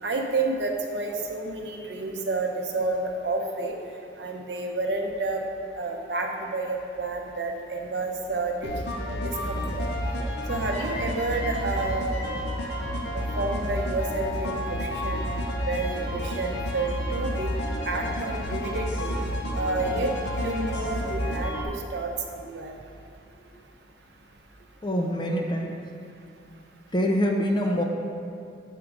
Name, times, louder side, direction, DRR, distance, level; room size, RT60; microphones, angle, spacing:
voice 1, 0.0-3.7 4.2-5.4 5.8-8.7 9.2-9.9 10.5-12.2 13.1-15.3 15.7-17.5 17.9-19.2 19.5-20.1 20.4-22.7, right 3 dB, 60° right, 2 dB, 0.7 m, -30 dB
sound 1, 8.6-21.6, equal, 60° left, 0.7 m, -30 dB
voice 2, 24.8-25.8 26.9-27.8, equal, 25° left, 0 dB, 0.6 m, -25 dB
8.3 x 3.8 x 4.7 m, 2.6 s
head